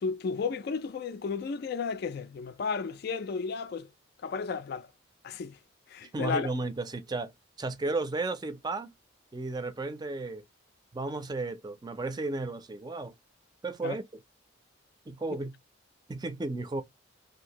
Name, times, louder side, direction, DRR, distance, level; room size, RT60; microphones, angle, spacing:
voice 1, 0.0-3.9 4.2-4.9 5.2-5.5 5.9-6.5 13.8-14.0, left 5 dB, 55° left, 0.3 m, -33 dB
voice 2, 6.1-7.3 7.6-8.9 9.3-10.4 10.9-13.1 13.6-14.2 15.1-15.6 16.1-16.8, right 2 dB, 20° right, 0.4 m, -33 dB
2.7 x 2.5 x 2.8 m
head